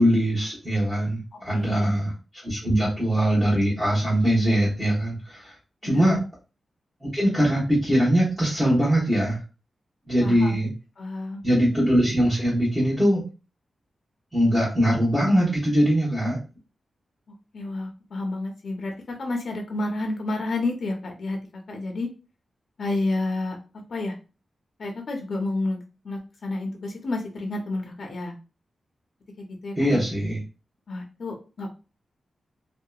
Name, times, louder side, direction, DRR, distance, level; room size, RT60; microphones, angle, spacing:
voice 1, 0.0-2.1 2.4-5.5 5.8-6.2 7.0-9.4 10.1-10.7 11.4-13.2 14.3-16.4 29.7-30.4, equal, 15° right, -10 dB, 1.0 m, -22 dB
voice 2, 1.3-1.9 5.8-6.2 10.2-10.6 11.0-11.4 17.5-21.4 21.7-22.1 22.8-23.6 23.9-24.1 24.8-25.8 26.0-28.3 29.4-30.0 30.9-31.7, left 2 dB, 60° left, 2 dB, 0.5 m, -30 dB
2.8 x 2.1 x 2.3 m, 0.32 s
wide cardioid pair, 130°, 0 cm